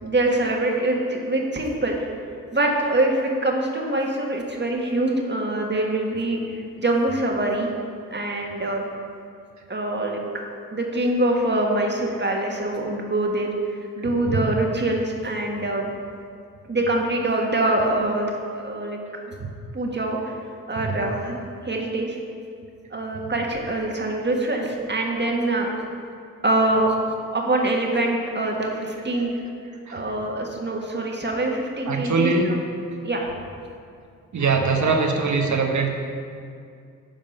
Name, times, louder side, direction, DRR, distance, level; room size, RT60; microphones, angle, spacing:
voice 1, 0.0-2.1 2.5-7.7 8.1-8.8 9.7-10.2 10.7-13.5 14.0-15.9 16.7-19.0 19.3-19.4 19.7-20.3 20.7-22.2 22.9-25.7 26.4-26.9 27.3-29.3 29.9-32.3 33.0-33.4, right 2 dB, 30° right, 0 dB, 1.7 m, -24 dB
voice 2, 31.9-32.5 34.3-35.9, right 4 dB, 50° right, 2 dB, 1.2 m, -22 dB
9.2 x 5.2 x 5.4 m, 2.4 s
supercardioid pair, 50°, 37 cm